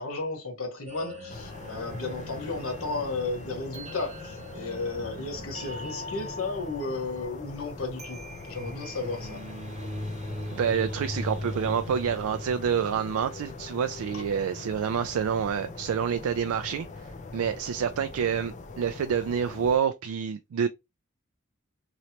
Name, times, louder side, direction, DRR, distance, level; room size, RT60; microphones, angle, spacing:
voice 1, 0.0-9.4, left 3 dB, 70° left, 1.2 m, -34 dB
sound 1, 0.9-13.8, equal, 30° right, 0.8 m, -40 dB
sound 2, 1.3-19.8, left 3 dB, 35° left, 0.5 m, -43 dB
voice 2, 10.5-20.7, right 7 dB, 85° right, 0.3 m, -28 dB
3.1 x 2.9 x 2.8 m
head